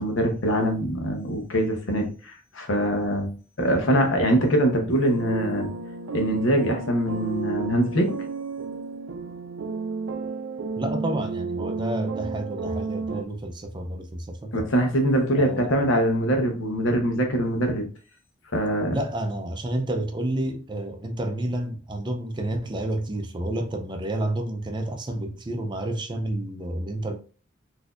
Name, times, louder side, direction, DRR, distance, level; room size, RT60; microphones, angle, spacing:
voice 1, 0.0-5.7 6.1-8.2 14.5-17.9 18.5-19.0, equal, 75° left, 0.9 m, -23 dB
sound 1, 5.2-13.2, right 4 dB, 85° right, 0.4 m, -32 dB
voice 2, 10.8-14.5 15.3-15.8 18.9-27.2, right 1 dB, 25° right, 0.4 m, -30 dB
4.0 x 2.7 x 2.4 m
head